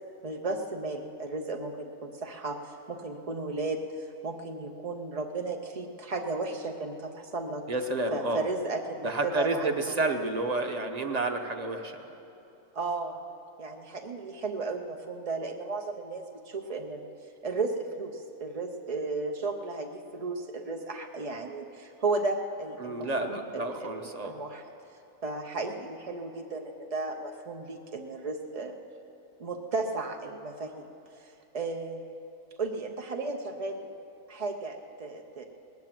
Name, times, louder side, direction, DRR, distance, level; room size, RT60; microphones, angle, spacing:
voice 1, 0.2-3.8 4.2-7.6 8.1-10.0 12.7-13.2 13.6-17.1 17.4-24.6 25.2-28.8 29.4-30.9 31.5-32.0 32.6-33.9 34.3-35.4, right 3 dB, 45° right, 3 dB, 0.4 m, -34 dB
voice 2, 7.7-8.4 9.0-12.2 22.8-24.4, right 2 dB, 30° right, 5 dB, 0.9 m, -30 dB
19.0 x 9.4 x 7.5 m, 2.9 s
omnidirectional pair, 1.6 m